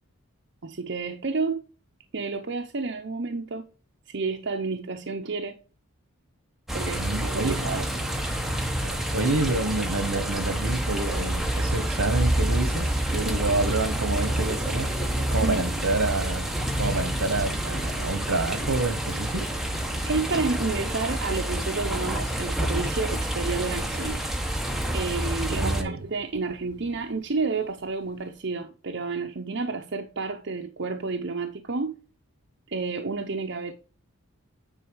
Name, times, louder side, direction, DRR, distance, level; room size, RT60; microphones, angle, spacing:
voice 1, 0.6-1.6 2.1-3.6 4.1-5.6 6.7-7.9 13.2-13.4 15.4-15.6 20.1-24.2 24.9-32.0 32.7-33.7, right 4 dB, 55° right, 0.7 m, -30 dB
sound 1, 6.7-25.8, right 1 dB, ahead, 1.0 m, -28 dB
voice 2, 6.9-7.6 8.8-19.5 25.5-26.0, right 2 dB, 70° right, 1.2 m, -28 dB
Thunder, 12.7-28.3, right 1 dB, 20° right, 1.6 m, -42 dB
9.9 x 3.9 x 4.7 m
head